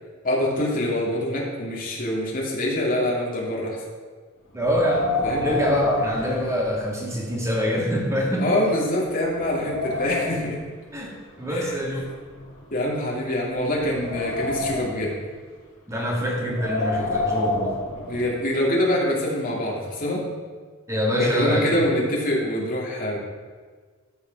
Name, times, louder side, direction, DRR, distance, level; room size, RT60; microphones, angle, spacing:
voice 1, 0.2-3.8 5.2-5.4 8.4-10.6 11.5-11.7 12.7-15.1 18.0-20.2 21.1-23.2, left 1 dB, 40° left, -3 dB, 2.8 m, -25 dB
voice 2, 4.5-8.5 10.9-12.1 15.9-17.8 20.9-21.9, equal, 15° right, -2 dB, 2.2 m, -25 dB
Wind, 4.6-7.2 7.5-7.6 8.3-8.4 8.9-10.5 11.4-12.9 13.5-15.1 16.3-18.5, left 2 dB, 65° left, 2.9 m, -29 dB
13.0 x 6.8 x 6.1 m, 1.5 s
head